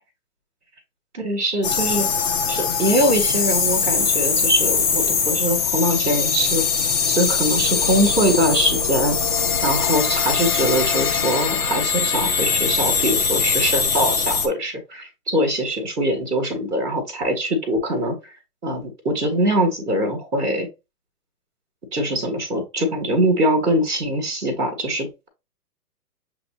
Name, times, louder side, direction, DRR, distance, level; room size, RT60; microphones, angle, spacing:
voice 1, 1.1-2.1 2.5-6.6 7.1-9.2 9.6-18.1 18.6-20.7 21.9-25.3, equal, 5° right, -15 dB, 0.4 m, -22 dB
sound 1, 1.6-14.5, left 6 dB, 30° left, 0.8 m, -21 dB
6.7 x 2.9 x 2.7 m, 0.25 s
hypercardioid pair, 130°, 47 cm